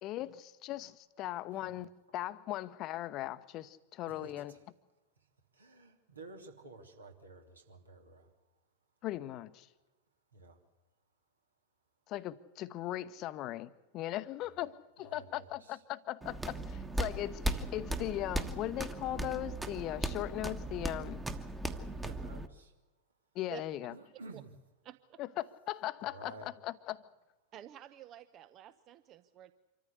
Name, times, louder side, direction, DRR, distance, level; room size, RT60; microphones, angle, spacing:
voice 1, 0.0-4.5 9.0-9.7 12.1-21.2 23.3-23.9 25.2-27.1, left 14 dB, 35° left, 0.9 m, -39 dB
voice 2, 4.0-4.6 5.2-8.3 10.3-10.6 14.4-14.5 15.0-15.8 21.7-22.7 23.9-24.5 26.0-26.5, right 3 dB, 75° right, 3.1 m, -53 dB
sound 1, 16.2-22.5, right 1 dB, 10° right, 1.4 m, -37 dB
voice 3, 24.8-25.2 27.5-29.5, right 11 dB, 35° right, 0.8 m, -50 dB
26.0 x 14.5 x 8.2 m
figure-of-eight pair, 90°, 0 cm